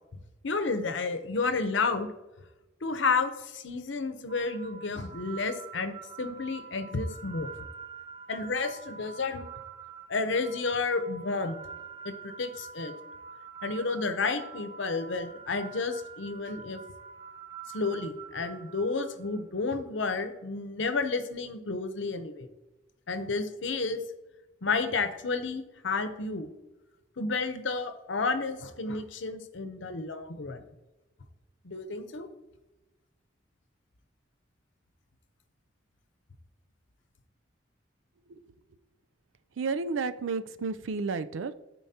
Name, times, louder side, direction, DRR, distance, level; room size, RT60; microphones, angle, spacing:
voice 1, 0.1-2.1 2.8-7.5 8.3-9.5 10.1-11.6 12.0-12.9 13.6-16.8 17.7-22.5 23.1-24.0 24.6-26.5 27.2-30.6 31.6-32.3, left 4 dB, 70° left, 9 dB, 0.7 m, -31 dB
sound 1, 4.3-19.4, right 6 dB, 20° right, 0.3 m, -46 dB
voice 2, 39.6-41.5, right 4 dB, 85° right, 12 dB, 0.4 m, -31 dB
13.0 x 4.5 x 2.8 m, 1.0 s
head